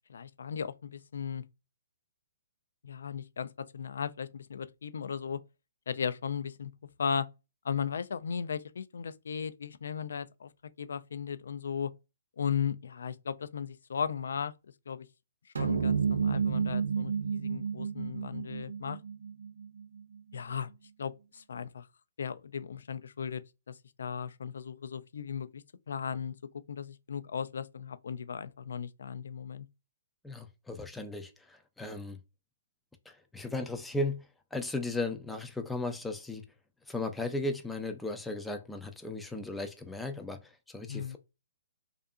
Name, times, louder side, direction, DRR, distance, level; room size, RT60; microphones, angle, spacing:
voice 1, 0.1-1.4 2.8-5.4 5.9-6.7 7.0-7.3 7.6-10.5 10.8-11.9 12.4-14.5 14.9-15.1 15.6-19.0 20.3-20.7 21.0-21.9 22.2-23.4 23.7-26.3 26.7-29.7 40.9-41.2, left 7 dB, 75° left, 0.3 m, -36 dB
sound 1, 15.6-20.2, right 6 dB, 85° right, 0.5 m, -31 dB
voice 2, 30.2-32.2 33.1-34.2 34.5-36.4 36.9-41.2, left 2 dB, 5° left, 0.4 m, -36 dB
2.6 x 2.4 x 2.2 m
hypercardioid pair, 140°, 0 cm